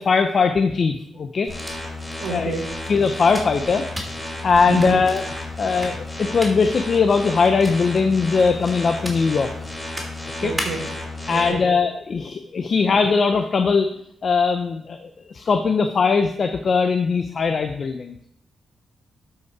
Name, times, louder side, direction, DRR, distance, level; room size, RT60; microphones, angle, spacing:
voice 1, 0.0-1.5 2.3-2.5 2.9-3.9 4.4-5.2 5.6-9.5 10.4-10.5 11.3-13.9 14.2-18.3, left 5 dB, 50° left, 8 dB, 0.6 m, -20 dB
sound 1, 1.4-11.0, equal, 15° right, 3.1 m, -38 dB
sound 2, 1.5-11.5, left 2 dB, 15° left, 2.8 m, -33 dB
voice 2, 2.2-2.8 4.7-5.0 10.4-10.9 11.3-11.7, right 3 dB, 85° right, -1 dB, 1.4 m, -29 dB
12.0 x 5.8 x 4.7 m, 0.74 s
cardioid pair, 85°, 0 cm